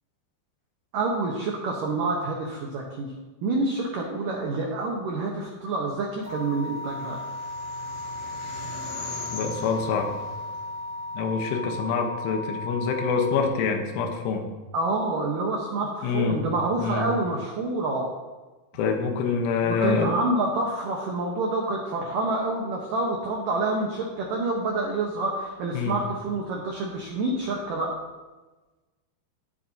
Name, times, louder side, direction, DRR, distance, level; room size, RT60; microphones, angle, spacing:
voice 1, 0.9-3.1 3.4-7.2 14.7-18.1 19.6-28.0, right 2 dB, 85° right, -1 dB, 1.9 m, -27 dB
sound 1, 6.2-13.5, left 2 dB, 50° right, 2.0 m, -36 dB
sound 2, 6.3-11.7, left 2 dB, 55° left, 2.1 m, -41 dB
voice 2, 9.3-10.2 11.1-14.5 16.0-16.4 16.8-17.1 18.7-20.1 25.7-26.0, left 5 dB, 80° left, 4 dB, 3.5 m, -26 dB
19.0 x 7.5 x 2.8 m, 1.2 s
omnidirectional pair, 5.6 m